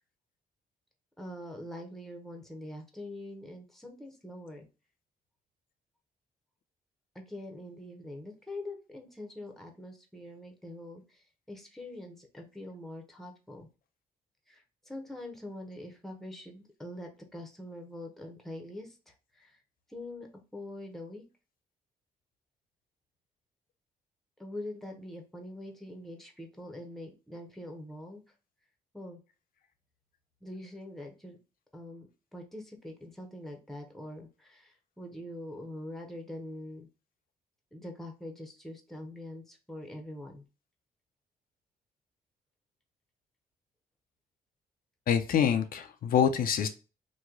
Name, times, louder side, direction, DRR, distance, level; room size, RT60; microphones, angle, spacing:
voice 1, 1.2-4.7 7.1-13.7 14.5-19.6 19.9-21.2 24.4-28.2 28.9-29.2 30.4-31.4 31.7-36.9 37.7-40.4, left 1 dB, ahead, 3 dB, 0.8 m, -44 dB
voice 2, 45.1-46.7, left 8 dB, 60° left, 7 dB, 0.4 m, -26 dB
3.0 x 2.2 x 3.6 m, 0.33 s
cardioid pair, 75°, 16 cm